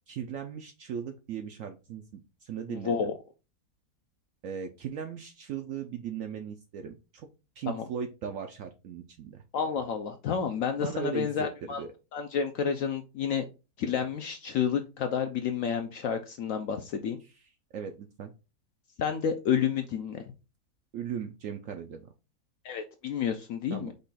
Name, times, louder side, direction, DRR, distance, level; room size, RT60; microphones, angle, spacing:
voice 1, 0.1-3.1 4.4-7.3 7.6-9.4 10.8-11.9 17.7-18.3 20.9-22.1 23.7-23.9, right 7 dB, 70° right, 5 dB, 0.7 m, -38 dB
voice 2, 2.7-3.1 7.7-7.8 9.5-11.8 12.1-13.4 13.8-17.2 19.0-20.2 22.6-23.9, left 7 dB, 70° left, 6 dB, 0.8 m, -30 dB
5.2 x 2.3 x 4.0 m, 0.30 s
omnidirectional pair, 1.8 m